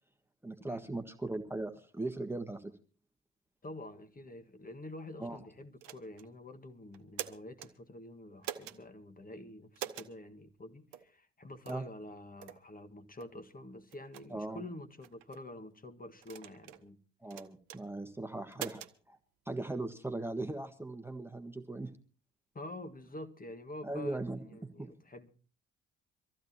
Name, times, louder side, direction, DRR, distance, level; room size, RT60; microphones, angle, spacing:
voice 1, 0.4-2.7 5.2-5.4 11.7-11.8 14.3-14.6 17.2-19.2 19.5-21.9 23.8-24.4 24.8-24.9, right 2 dB, 5° right, 1.5 m, -39 dB
voice 2, 3.6-17.0 22.5-25.3, left 1 dB, 25° left, 1.7 m, -47 dB
sound 1, 5.8-6.3 6.9-7.7 8.4-8.8 9.8-10.1 10.9-11.1 11.6-11.9 12.4-12.6 13.2-13.3 13.9-14.2 15.0-15.4 16.2-16.8 17.3-17.8 18.5-18.9, right 11 dB, 70° right, 1.0 m, -43 dB
24.5 x 14.5 x 2.9 m
figure-of-eight pair, 55°, 37 cm